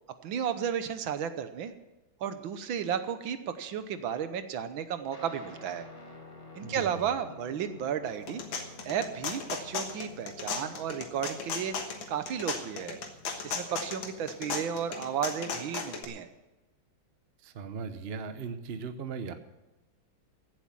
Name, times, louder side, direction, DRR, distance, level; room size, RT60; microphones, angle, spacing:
voice 1, 0.2-1.7 2.2-5.8 6.6-8.4 8.8-11.7 12.1-13.0 13.4-16.3, right 8 dB, 70° right, 10 dB, 1.6 m, -33 dB
Guitar, 5.1-14.8, left 3 dB, 20° left, 1.7 m, -51 dB
voice 2, 6.6-7.1 17.4-19.3, right 5 dB, 50° right, 9 dB, 0.7 m, -38 dB
sound 1, 8.1-16.0, left 5 dB, 65° left, 2.0 m, -36 dB
16.0 x 7.8 x 7.4 m, 1.0 s
omnidirectional pair, 2.4 m